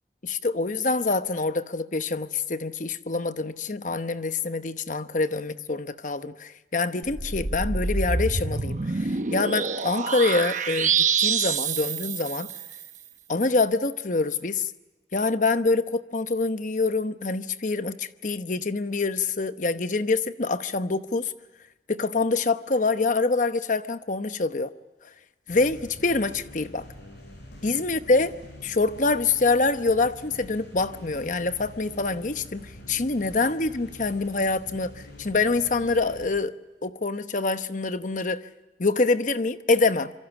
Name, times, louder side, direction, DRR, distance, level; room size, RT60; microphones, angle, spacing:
voice 1, 0.2-12.5 13.3-14.7 15.1-21.3 21.9-24.7 25.5-26.9 27.6-28.3 28.6-34.9 35.2-36.5 36.8-38.4 38.8-40.1, left 3 dB, 45° left, 0.9 m, -25 dB
sound 1, 7.0-12.9, right 5 dB, 45° right, 1.0 m, -27 dB
sound 2, 25.5-36.3, left 1 dB, 80° left, 6.2 m, -45 dB
27.0 x 24.0 x 7.1 m
head